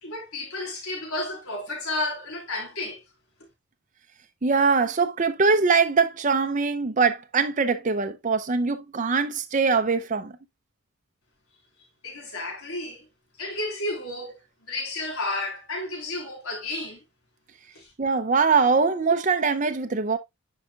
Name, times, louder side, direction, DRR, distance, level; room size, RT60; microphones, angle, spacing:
voice 1, 0.0-3.0 12.0-13.1 13.4-14.4 14.7-17.0 17.7-17.9, left 2 dB, 80° left, 3.6 m, -32 dB
voice 2, 4.4-10.3 18.0-20.2, right 4 dB, 35° right, 0.5 m, -22 dB
10.0 x 4.9 x 2.3 m
head